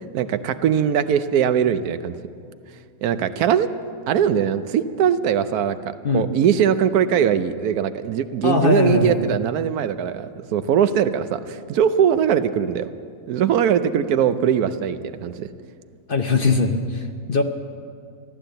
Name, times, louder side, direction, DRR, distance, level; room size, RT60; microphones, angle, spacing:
voice 1, 0.0-2.1 3.0-3.7 4.1-12.9 13.3-15.5, right 8 dB, 80° right, 12 dB, 1.2 m, -21 dB
voice 2, 8.4-9.3 16.1-17.4, left 4 dB, 45° left, 5 dB, 0.8 m, -21 dB
14.5 x 12.0 x 7.8 m, 2.3 s
omnidirectional pair, 1.6 m